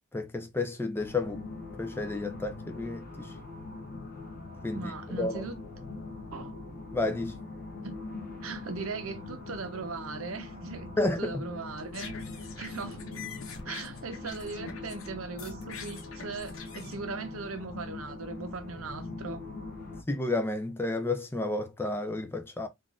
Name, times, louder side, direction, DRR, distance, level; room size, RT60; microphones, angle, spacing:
voice 1, 0.1-1.4 1.8-3.3 4.6-4.9 5.2-5.5 6.9-7.3 11.0-11.4 20.1-22.7, left 2 dB, 10° left, 0.3 m, -31 dB
sound 1, 1.0-20.0, left 3 dB, 45° left, 0.7 m, -42 dB
voice 2, 4.7-5.6 6.3-6.5 7.8-8.0 8.4-13.0 13.6-19.5, right 3 dB, 80° right, 0.7 m, -39 dB
sound 2, 11.7-15.1 15.4-16.9, left 6 dB, 75° left, 0.9 m, -45 dB
3.8 x 2.4 x 2.4 m
head